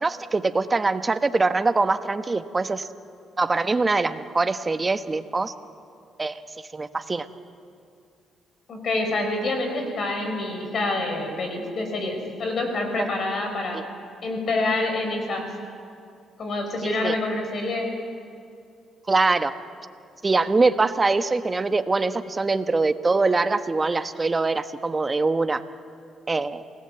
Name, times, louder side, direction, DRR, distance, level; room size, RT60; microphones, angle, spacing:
voice 1, 0.0-2.9 3.4-5.5 6.2-6.4 6.7-7.3 13.0-13.1 13.7-13.8 16.8-17.1 19.1-19.5 20.2-25.6 26.3-26.6, right 3 dB, 30° right, 9 dB, 1.3 m, -23 dB
voice 2, 8.7-13.8 14.2-15.5 16.4-17.9, left 2 dB, 55° left, 4 dB, 5.4 m, -27 dB
28.0 x 18.5 x 8.2 m, 2.4 s
supercardioid pair, 65°, 0 cm